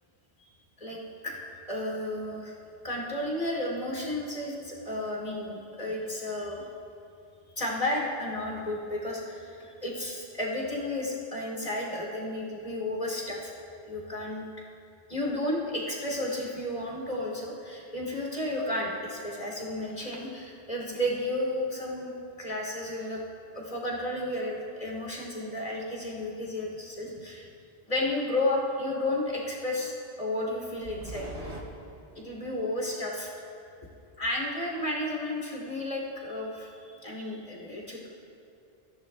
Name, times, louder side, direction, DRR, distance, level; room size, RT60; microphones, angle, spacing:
voice 1, 0.8-1.3 1.7-2.5 2.8-6.6 7.6-13.5 13.9-14.4 15.1-22.1 22.4-23.2 23.5-27.5 27.9-31.2 32.1-33.3 34.2-38.1, left 1 dB, 40° left, -2 dB, 3.1 m, -32 dB
sound 1, 26.5-27.4 30.8-31.6, equal, 85° right, 2.3 m, -42 dB
23.5 x 15.5 x 2.3 m, 2.6 s
omnidirectional pair, 1.1 m